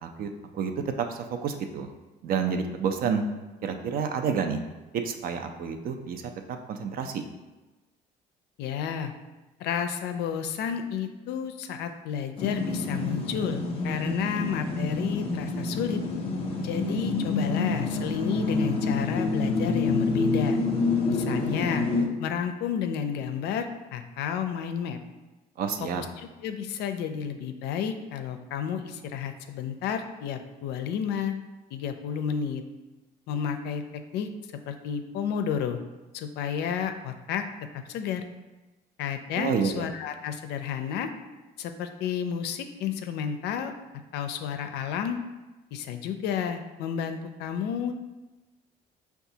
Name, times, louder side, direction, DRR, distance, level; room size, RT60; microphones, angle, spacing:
voice 1, 0.0-0.7 1.1-1.9 2.2-3.3 3.6-4.6 4.9-6.2 6.5-7.2 25.6-26.0 39.3-39.9, right 6 dB, 60° right, 6 dB, 0.4 m, -29 dB
voice 2, 8.6-9.1 9.6-16.0 16.6-20.6 21.1-21.9 22.2-25.0 25.8-31.3 31.7-32.6 33.3-33.8 34.1-34.3 34.7-35.8 36.1-37.4 37.9-38.2 39.0-41.1 41.6-43.7 44.1-45.2 45.7-47.9, left 8 dB, 80° left, 7 dB, 0.4 m, -31 dB
sound 1, 12.4-22.0, left 3 dB, 35° left, 0.6 m, -27 dB
5.7 x 2.3 x 2.7 m, 1.1 s
cardioid pair, 110°, 17 cm